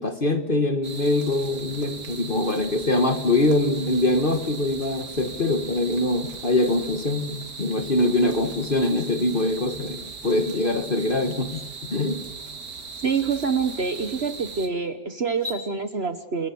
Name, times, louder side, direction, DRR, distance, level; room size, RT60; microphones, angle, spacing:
voice 1, 0.0-12.2, left 2 dB, 35° left, 8 dB, 1.3 m, -23 dB
sound 1, 0.8-14.7, right 4 dB, 70° right, 2.7 m, -39 dB
sound 2, 11.5-11.6 13.3-13.4 13.9-14.1 15.3-15.6, left 3 dB, 15° right, 6.7 m, -38 dB
voice 2, 13.0-16.5, right 5 dB, 40° right, 10 dB, 1.2 m, -26 dB
29.0 x 21.0 x 7.1 m, 1.2 s
omnidirectional pair, 1.9 m